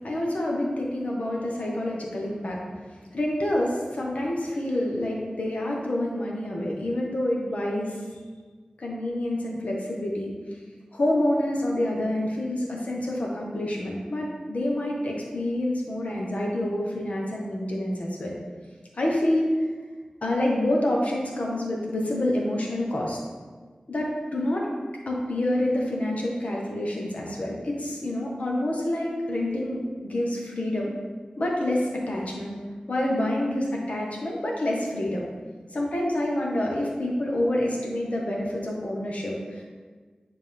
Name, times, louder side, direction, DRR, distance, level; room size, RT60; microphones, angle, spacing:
voice 1, 0.0-2.6 2.9-8.0 8.8-10.3 10.9-18.3 18.9-19.5 20.2-23.2 23.9-24.7 25.1-30.9 31.4-32.5 32.9-35.2 35.7-39.6, left 1 dB, 60° left, -2 dB, 1.3 m, -27 dB
8.9 x 3.8 x 3.6 m, 1.5 s
wide cardioid pair, 80°, 3 cm